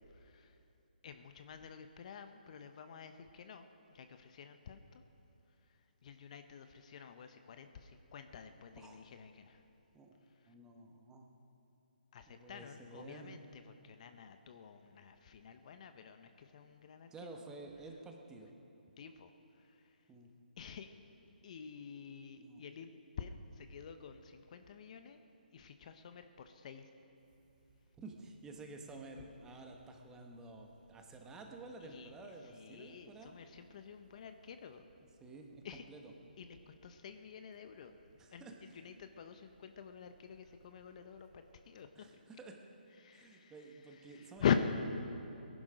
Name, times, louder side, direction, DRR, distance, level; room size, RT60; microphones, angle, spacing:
voice 1, 0.1-0.6 1.0-5.0 5.6-9.6 10.4-10.5 12.1-17.3 19.0-20.0 20.6-20.9 21.4-25.2 25.5-26.9 31.8-34.8 35.6-35.9 36.4-37.9 38.3-42.1 43.0-44.5, left 8 dB, 45° left, 8 dB, 0.8 m, -45 dB
voice 2, 10.5-11.3 12.3-13.4 17.1-18.5 20.1-20.3 22.4-22.6 28.0-33.3 35.2-35.6 35.9-36.1 38.2-38.6 41.9-42.6 43.1-44.5, right 2 dB, 10° right, 2 dB, 1.2 m, -51 dB
sound 1, 27.2-41.9, right 4 dB, 50° right, 2.2 m, -69 dB
18.5 x 11.0 x 5.1 m, 2.9 s
hypercardioid pair, 150°, 5 cm